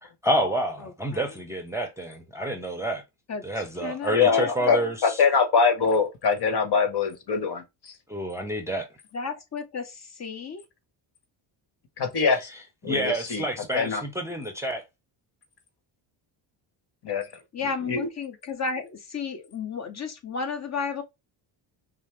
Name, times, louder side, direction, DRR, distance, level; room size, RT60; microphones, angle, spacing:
voice 1, 0.0-3.0 3.4-5.2 8.1-8.9 12.9-14.8, right 1 dB, 5° right, 0.8 m, -29 dB
voice 2, 0.8-1.4 3.3-4.9 9.1-10.6 17.5-21.0, left 5 dB, 35° left, 1.0 m, -33 dB
voice 3, 4.1-7.9 12.0-12.5 12.8-13.4 13.7-14.0 17.0-17.2 17.9-18.1, left 5 dB, 55° left, 1.3 m, -23 dB
5.3 x 2.0 x 3.2 m
cardioid pair, 90°, 49 cm